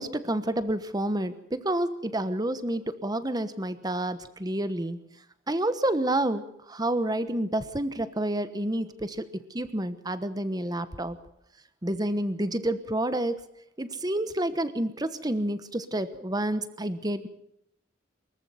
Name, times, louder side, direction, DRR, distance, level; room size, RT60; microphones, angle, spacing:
voice 1, 0.0-5.0 5.5-11.2 11.8-13.4 13.8-17.3, right 1 dB, 20° right, 12 dB, 1.2 m, -29 dB
23.5 x 14.5 x 7.9 m, 0.76 s
head